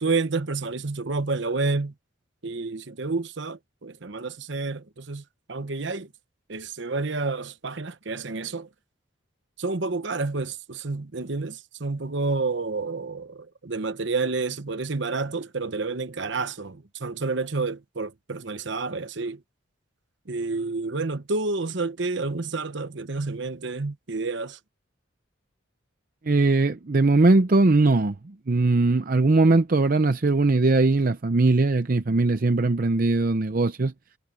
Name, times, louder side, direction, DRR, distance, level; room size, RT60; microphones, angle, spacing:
voice 1, 0.0-1.9 2.4-5.2 5.5-6.1 6.5-8.7 9.6-19.4 20.3-24.6, right 3 dB, 60° right, 1.0 m, -29 dB
voice 2, 26.2-33.9, right 3 dB, 45° right, 0.6 m, -20 dB
head